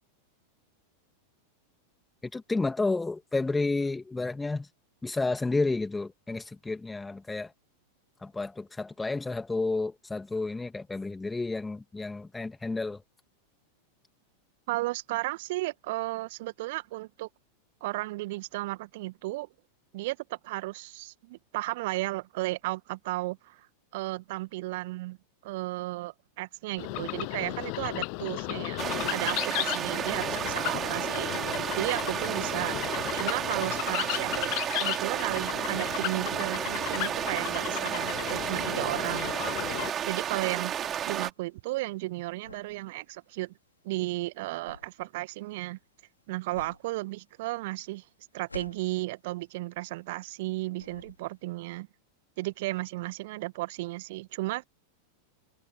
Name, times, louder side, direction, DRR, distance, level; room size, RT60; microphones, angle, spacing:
voice 1, 2.3-4.7 5.0-7.5 8.2-13.0, left 3 dB, 10° left, 2.6 m, -31 dB
voice 2, 14.7-17.3 17.8-19.5 19.9-23.7 23.9-25.2 25.4-31.4 31.8-32.8 33.1-39.3 40.1-40.7 41.1-43.5 43.8-45.8 46.3-48.1 48.3-51.9 52.4-54.7, right 20 dB, 50° right, 1.9 m, -34 dB
sound 1, 26.8-39.9, left 40 dB or more, 45° left, 0.6 m, -35 dB
sound 2, 28.8-41.3, right 9 dB, 25° right, 4.0 m, -32 dB
sound 3, 40.0-50.5 50.7-51.6, left 3 dB, 80° left, 5.0 m, -50 dB
figure-of-eight pair, 90°, 0 cm